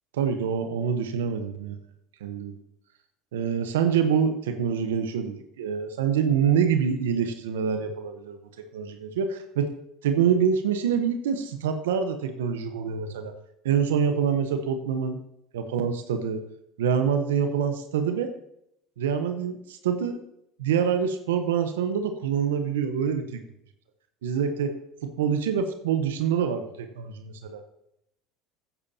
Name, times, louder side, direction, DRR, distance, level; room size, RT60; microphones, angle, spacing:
voice 1, 0.1-1.8 2.2-2.5 3.3-9.7 10.0-13.3 13.6-15.2 15.5-16.4 16.8-18.3 19.0-20.2 20.6-23.4 24.2-24.7 25.0-27.6, right 7 dB, 85° right, 8 dB, 0.9 m, -26 dB
14.0 x 10.0 x 2.8 m, 0.79 s
hypercardioid pair, 80°, 0 cm